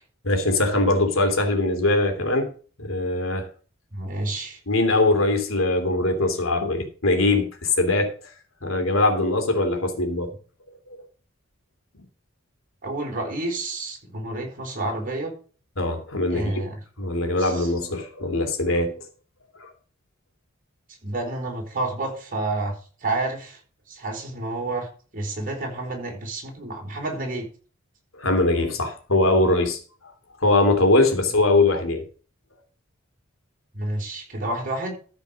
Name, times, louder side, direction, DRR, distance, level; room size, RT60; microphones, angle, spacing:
voice 1, 0.2-2.5 2.8-3.5 4.7-8.1 8.6-10.4 10.9-11.0 15.8-16.5 17.0-19.0 19.6-19.7 28.2-29.8 30.4-32.0, left 2 dB, 80° left, 2.9 m, -21 dB
voice 2, 3.9-4.6 12.8-15.3 16.3-16.8 17.4-17.7 21.0-22.7 23.0-23.6 23.9-27.4 33.7-35.0, right 2 dB, 40° right, 4.2 m, -29 dB
13.5 x 5.2 x 6.4 m
head